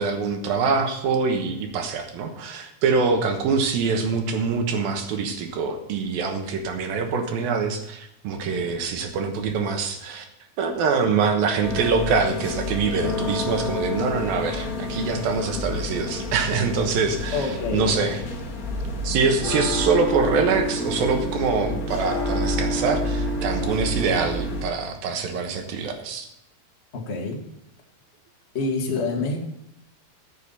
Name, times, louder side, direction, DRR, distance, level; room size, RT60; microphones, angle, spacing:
voice 1, 0.0-10.3 10.6-18.2 19.0-26.3, right 5 dB, 75° right, 5 dB, 3.0 m, -24 dB
sound 1, 11.6-24.6, left 1 dB, 50° left, 1.0 m, -29 dB
voice 2, 17.3-17.9 26.9-27.4 28.5-29.4, left 3 dB, 70° left, 0 dB, 0.6 m, -26 dB
14.0 x 7.1 x 5.6 m, 0.82 s
omnidirectional pair, 4.3 m